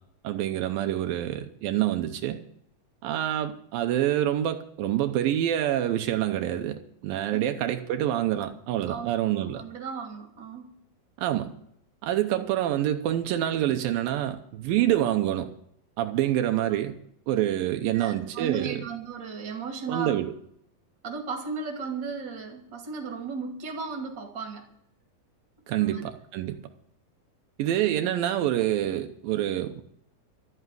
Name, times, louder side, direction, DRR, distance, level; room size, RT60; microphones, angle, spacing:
voice 1, 0.2-2.4 3.0-9.6 11.2-11.5 12.0-15.5 16.0-17.0 17.3-18.8 19.9-20.3 25.7-26.6 27.6-29.8, right 12 dB, 85° right, 2.6 m, -26 dB
voice 2, 7.1-7.5 8.9-10.7 16.7-16.8 17.9-20.2 21.0-24.7 25.7-26.0, right 5 dB, 35° right, 2.8 m, -35 dB
13.0 x 8.2 x 9.4 m
omnidirectional pair, 4.1 m